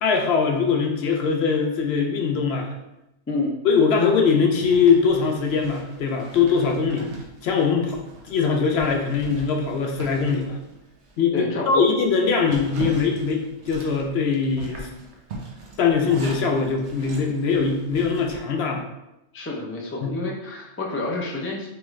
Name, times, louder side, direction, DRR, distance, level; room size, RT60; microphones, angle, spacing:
voice 1, 0.0-2.7 3.6-7.1 7.4-8.0 8.3-10.6 11.2-14.9 15.8-18.8 20.0-20.1, left 5 dB, 65° left, 2 dB, 0.8 m, -21 dB
Zipper (clothing), 4.6-11.2 11.6-11.7 12.1-18.4, right 3 dB, 70° right, 1.0 m, -41 dB
voice 2, 11.3-11.9 19.3-21.7, left 2 dB, 20° left, -1 dB, 0.3 m, -29 dB
3.6 x 3.2 x 3.1 m, 0.91 s
omnidirectional pair, 1.2 m